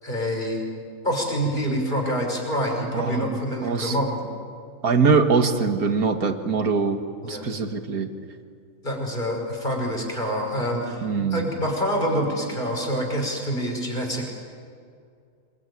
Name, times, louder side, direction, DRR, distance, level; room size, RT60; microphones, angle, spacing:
voice 1, 0.0-0.6 1.0-4.2 7.2-7.5 8.8-14.3, equal, 30° left, 0 dB, 5.9 m, -26 dB
voice 2, 2.9-4.0 4.8-7.0 7.3-8.1 11.0-11.5, right 5 dB, 80° right, 7 dB, 2.3 m, -23 dB
27.5 x 22.0 x 9.9 m, 2.3 s
omnidirectional pair, 1.5 m